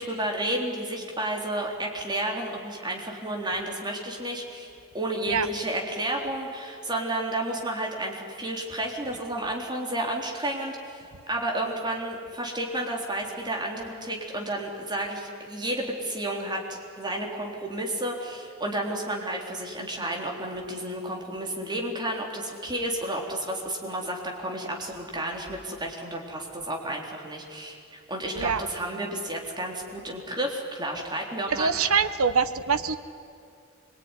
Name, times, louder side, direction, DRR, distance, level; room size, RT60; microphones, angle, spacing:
voice 1, 0.0-4.7 4.9-11.0 11.3-31.7, right 1 dB, 20° right, 0 dB, 3.7 m, -31 dB
voice 2, 31.5-33.0, right 5 dB, 85° right, 11 dB, 1.0 m, -24 dB
25.5 x 22.5 x 9.9 m, 2.4 s
head